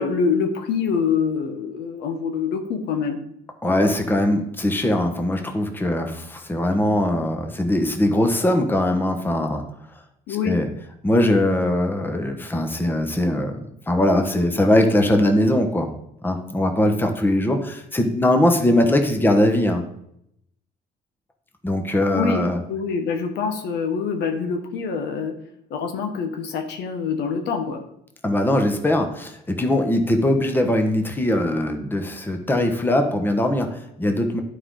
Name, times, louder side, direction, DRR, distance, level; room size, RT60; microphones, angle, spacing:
voice 1, 0.0-3.2 10.3-10.6 22.1-22.4 22.7-25.3 25.7-27.8, left 6 dB, 80° left, 5 dB, 1.2 m, -25 dB
voice 2, 3.6-9.6 10.4-10.7 11.0-15.9 16.2-19.8 21.6-22.6 28.2-34.4, left 1 dB, 10° left, 5 dB, 1.1 m, -21 dB
11.0 x 4.9 x 3.8 m, 0.75 s
cardioid pair, 110°, 17 cm